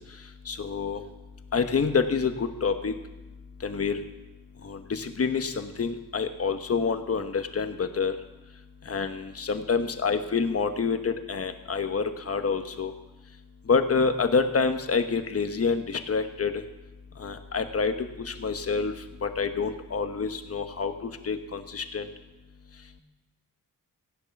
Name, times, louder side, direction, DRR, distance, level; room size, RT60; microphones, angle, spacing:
voice 1, 0.5-1.0 1.5-2.9 3.6-4.0 4.7-8.1 8.9-12.9 13.7-16.5 17.2-17.9 18.3-18.9 19.2-22.1, left 5 dB, 45° left, 7 dB, 1.1 m, -27 dB
16.0 x 10.5 x 5.9 m, 1.0 s
wide cardioid pair, 160°, 34 cm